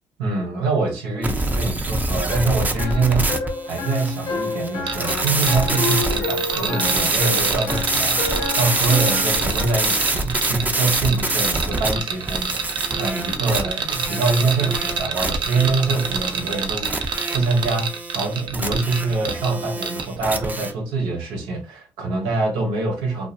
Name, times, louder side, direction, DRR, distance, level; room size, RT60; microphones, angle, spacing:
voice 1, 0.2-3.4 3.7-23.3, right 3 dB, 90° right, 0.9 m, -24 dB
sound 1, 1.2-20.7, right 2 dB, 20° right, 0.5 m, -26 dB
sound 2, 2.3-10.0, left 4 dB, 65° left, 0.6 m, -30 dB
sound 3, 4.9-19.5 19.8-20.1, right 6 dB, 65° right, 0.5 m, -27 dB
2.4 x 2.2 x 2.5 m
supercardioid pair, 65°, 9 cm